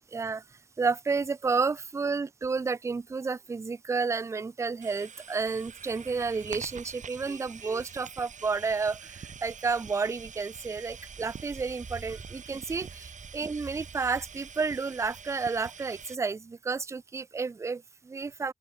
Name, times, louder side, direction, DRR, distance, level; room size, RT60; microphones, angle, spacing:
voice 1, 0.1-0.4 0.8-18.5, right 4 dB, 20° right, 0.3 m, -31 dB
sound 1, 4.8-16.2, right 7 dB, 65° right, 2.1 m, -46 dB
Walk footsteps, 9.0-16.0, right 4 dB, 45° right, 3.6 m, -50 dB
open air
cardioid pair, 55°, 14 cm